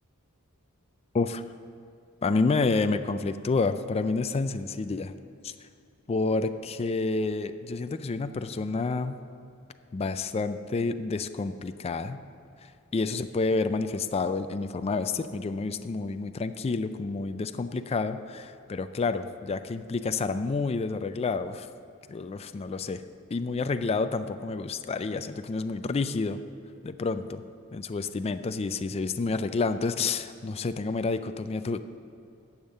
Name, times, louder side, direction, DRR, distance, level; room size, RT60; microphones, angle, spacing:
voice 1, 2.2-5.1 5.4-5.5 6.1-9.2 9.9-12.2 12.9-21.7 22.1-23.0 23.3-26.4 26.8-27.4 27.7-31.8, left 3 dB, 30° left, 10 dB, 0.3 m, -29 dB
10.5 x 7.3 x 6.5 m, 2.5 s
head